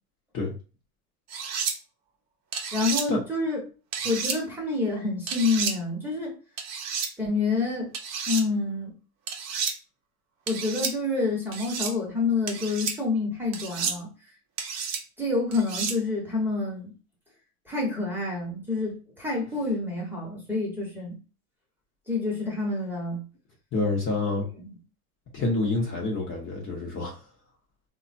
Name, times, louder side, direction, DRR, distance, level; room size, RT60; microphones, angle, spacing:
sound 1, 1.3-1.7 2.5-3.0 3.9-4.4 5.3-5.7 6.6-7.1 7.9-8.4 9.3-9.7 10.5-10.9 11.5-11.9 12.5-12.9 13.5-14.0 14.6-15.0 15.5-16.0, right 6 dB, 40° right, 0.7 m, -31 dB
voice 1, 2.7-3.6 4.0-6.4 7.2-7.9 8.3-8.9 10.5-14.1 15.2-16.9 17.7-21.2 22.1-23.2 24.4-24.7, left 3 dB, 5° right, 1.0 m, -28 dB
voice 2, 23.7-24.4 25.3-27.1, left 3 dB, 30° left, 0.8 m, -27 dB
3.4 x 2.3 x 2.6 m
supercardioid pair, 125°, 44 cm